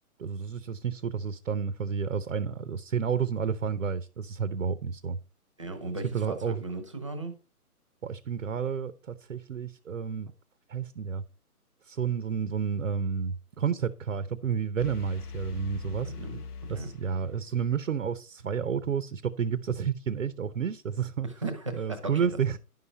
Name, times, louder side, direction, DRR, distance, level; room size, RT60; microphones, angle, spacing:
voice 1, 0.2-5.2 6.1-6.6 8.0-10.3 10.7-11.2 11.8-16.1 16.7-21.3 21.8-22.6, right 7 dB, 55° right, 0.8 m, -30 dB
voice 2, 5.6-7.4 16.0-16.4 16.7-16.9 21.2-22.3, right 2 dB, 20° right, 0.9 m, -36 dB
sound 1, 14.8-17.7, left 5 dB, 80° left, 0.9 m, -42 dB
11.0 x 5.7 x 4.4 m
hypercardioid pair, 175°, 45 cm